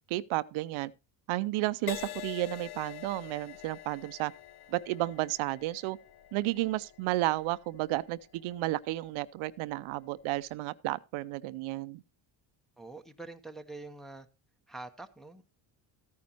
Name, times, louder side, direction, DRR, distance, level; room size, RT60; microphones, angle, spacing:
voice 1, 0.1-0.9 1.3-4.3 4.7-6.0 6.3-12.0, right 18 dB, 80° right, 0.7 m, -32 dB
Crash cymbal, 1.9-9.5 10.2-10.5, left 14 dB, 50° left, 0.6 m, -46 dB
voice 2, 12.8-14.3 14.7-15.4, right 2 dB, ahead, 0.8 m, -45 dB
14.5 x 9.5 x 2.9 m
cardioid pair, 125°, 48 cm